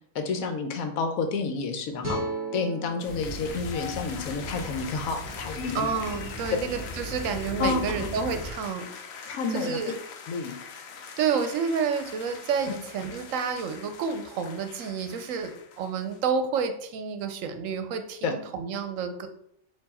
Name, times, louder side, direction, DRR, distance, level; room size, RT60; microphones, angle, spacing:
voice 1, 0.1-2.2 2.5-5.9 7.6-7.8 9.3-9.8 10.3-10.5 18.2-18.3, left 4 dB, 85° left, 6 dB, 1.1 m, -29 dB
sound 1, 2.0-5.2, right 1 dB, 10° left, 1.2 m, -37 dB
sound 2, 3.0-16.2, left 6 dB, 65° left, 0.7 m, -43 dB
sound 3, 3.1-8.5, left 1 dB, 45° left, 1.2 m, -39 dB
voice 2, 5.7-9.9 11.2-19.3, right 6 dB, 75° right, 8 dB, 0.9 m, -30 dB
4.5 x 2.7 x 4.1 m, 0.68 s
omnidirectional pair, 1.4 m